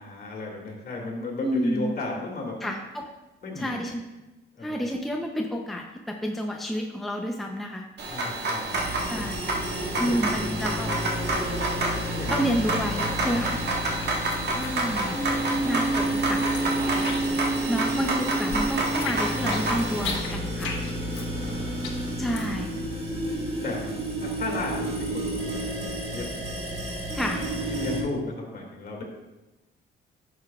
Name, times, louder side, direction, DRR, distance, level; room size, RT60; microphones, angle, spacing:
voice 1, 0.0-2.7 3.4-3.7 4.6-4.9 8.1-9.3 9.9-10.5 12.1-12.4 13.2-14.0 21.0-21.6 22.3-22.4 23.6-23.9 24.2-26.3 27.7-29.0, left 2 dB, 50° left, -1 dB, 2.4 m, -35 dB
voice 2, 1.4-1.9 2.6-3.1 3.6-4.0 4.6-7.8 9.1-9.4 10.0-10.9 11.3-11.4 12.3-13.6 14.6-15.1 15.6-16.4 17.7-20.7 22.2-22.7 27.1-27.4, equal, ahead, 1 dB, 0.7 m, -29 dB
sound 1, 8.0-20.2, right 2 dB, 60° right, 1.5 m, -29 dB
sound 2, 8.7-28.0, right 1 dB, 30° right, 1.9 m, -30 dB
sound 3, 12.7-13.4 13.7-15.5 15.7-17.6 17.9-22.7, left 4 dB, 75° left, 1.3 m, -37 dB
11.0 x 6.8 x 2.4 m, 1.1 s
cardioid pair, 90°, 20 cm